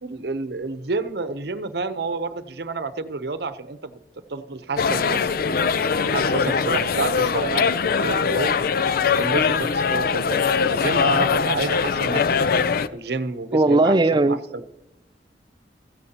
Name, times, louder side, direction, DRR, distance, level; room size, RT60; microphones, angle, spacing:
voice 1, 0.0-3.9 4.3-5.6 6.1-8.6 9.2-12.4 12.9-14.6, right 3 dB, 65° right, 12 dB, 0.8 m, -29 dB
sound 1, 4.8-12.9, left 5 dB, 55° left, 0.5 m, -22 dB
voice 2, 13.5-14.4, right 2 dB, 25° right, 11 dB, 0.5 m, -17 dB
16.5 x 14.5 x 2.9 m, 0.88 s
head